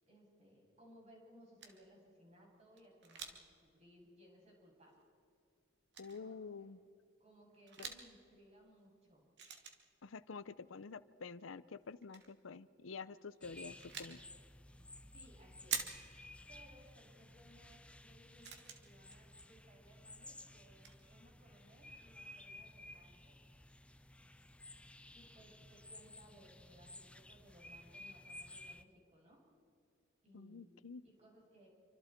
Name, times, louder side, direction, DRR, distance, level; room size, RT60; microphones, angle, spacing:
voice 1, 0.0-5.0 6.1-6.7 7.2-9.3 14.7-14.8 15.1-15.8 16.5-23.4 25.1-29.4 30.2-30.8 31.0-31.7, equal, 35° right, -2 dB, 7.4 m, -63 dB
sound 1, 1.6-1.9 2.8-3.5 3.8-3.9 4.9-5.0 5.9-6.2 7.6-8.1 9.4-10.0 11.8-12.3 13.3-14.2 15.7-16.3 17.4-17.5 18.0-18.1 18.4-19.4 20.4-20.5 20.8-21.0, right 7 dB, 60° right, 2.3 m, -45 dB
voice 2, 6.0-6.8 7.8-7.9 10.0-14.2 30.3-31.0, left 4 dB, 85° left, 16 dB, 0.7 m, -49 dB
sound 2, 13.4-28.8, left 1 dB, 5° left, 0.6 m, -56 dB
28.5 x 25.0 x 4.5 m, 2.4 s
head